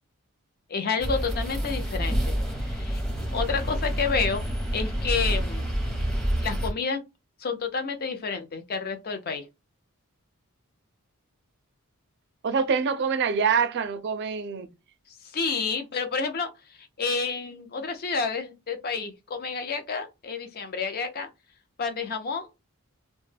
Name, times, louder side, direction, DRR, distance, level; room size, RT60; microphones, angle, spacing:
voice 1, 0.7-3.0 3.3-4.4 4.7-5.7 6.4-7.0 7.4-9.5 15.3-16.5 17.0-21.3 21.8-22.5, left 5 dB, 45° left, 0.5 m, -29 dB
sound 1, 1.0-6.7, equal, ahead, 0.7 m, -28 dB
voice 2, 12.4-14.7, right 6 dB, 50° right, 0.4 m, -25 dB
2.2 x 2.1 x 3.2 m
head